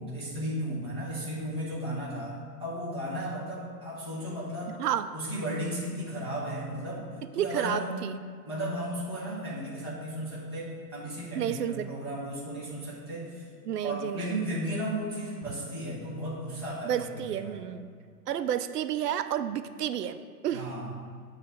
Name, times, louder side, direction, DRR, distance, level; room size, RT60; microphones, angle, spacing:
voice 1, 0.0-4.8 5.1-7.0 7.3-8.0 8.5-13.5 13.8-17.6 20.5-20.9, right 1 dB, 15° left, -9 dB, 0.5 m, -35 dB
voice 2, 7.3-8.1 11.3-11.9 13.7-14.4 16.8-17.9 18.3-20.7, right 10 dB, 75° right, 11 dB, 0.5 m, -31 dB
7.6 x 3.2 x 5.8 m, 2.1 s
hypercardioid pair, 175°, 48 cm